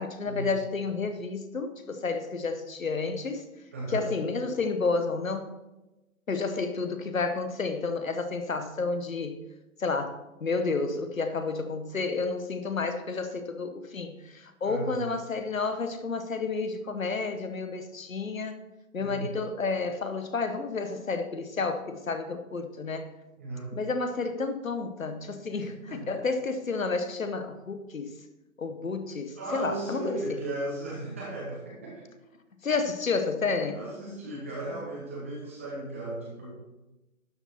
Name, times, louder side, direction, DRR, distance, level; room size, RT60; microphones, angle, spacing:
voice 1, 0.0-3.4 3.9-5.6 6.3-9.4 9.8-18.6 18.9-23.1 23.7-28.1 28.6-30.2 32.6-33.8, left 4 dB, 65° left, 9 dB, 1.1 m, -31 dB
voice 2, 3.7-4.1 14.6-15.0 19.0-19.3 23.4-23.7 25.5-26.0 29.3-32.0 33.5-36.5, right 2 dB, 10° right, -5 dB, 0.8 m, -36 dB
12.0 x 5.0 x 4.3 m, 1.0 s
figure-of-eight pair, 150°, 44 cm